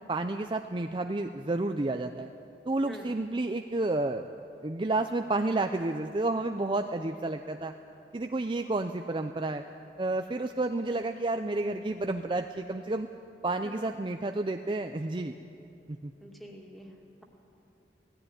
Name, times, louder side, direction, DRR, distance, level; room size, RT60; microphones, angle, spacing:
voice 1, 0.1-2.3 2.7-4.2 4.6-7.7 8.1-9.6 10.0-13.1 13.4-15.4 15.9-16.1, right 2 dB, 30° right, 6 dB, 0.5 m, -30 dB
voice 2, 16.2-17.2, equal, ahead, 0 dB, 2.3 m, -47 dB
18.0 x 15.5 x 9.9 m, 2.8 s
head